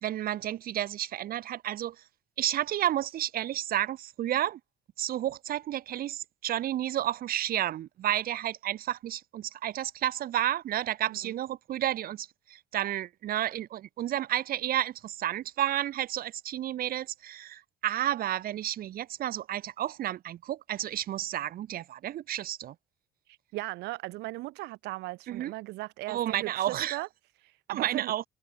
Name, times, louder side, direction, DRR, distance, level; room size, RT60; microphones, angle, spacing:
voice 1, 0.0-2.0 2.4-4.6 5.0-22.7 25.3-25.5 26.1-27.0 27.7-28.2, right 12 dB, 60° right, 1.3 m, -31 dB
voice 2, 23.3-27.1 27.4-28.1, right 20 dB, 90° right, 1.7 m, -38 dB
cardioid pair, 110°, 17 cm